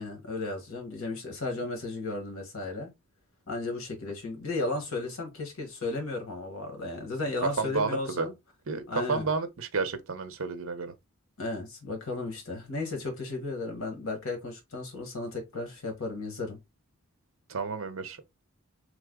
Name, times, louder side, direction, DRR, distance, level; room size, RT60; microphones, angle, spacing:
voice 1, 0.0-2.9 3.5-8.3 8.9-9.3 11.4-16.6, left 2 dB, 70° left, 1.1 m, -34 dB
voice 2, 7.4-8.3 8.7-10.9 17.5-18.2, right 4 dB, 65° right, 0.7 m, -31 dB
3.2 x 2.0 x 3.6 m
head